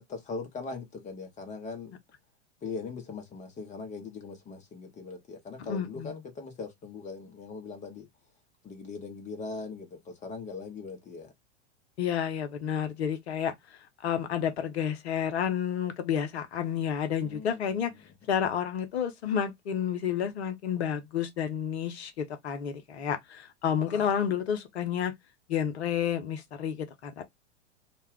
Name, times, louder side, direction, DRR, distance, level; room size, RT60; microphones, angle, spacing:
voice 1, 0.0-2.0 2.6-8.1 8.6-11.3 17.2-18.0, left 4 dB, 20° left, 0.9 m, -40 dB
voice 2, 5.6-6.1 12.0-13.5 14.0-17.9 18.3-25.1 25.5-27.2, left 8 dB, 65° left, 0.8 m, -30 dB
2.3 x 2.2 x 3.4 m
figure-of-eight pair, 90°, 35 cm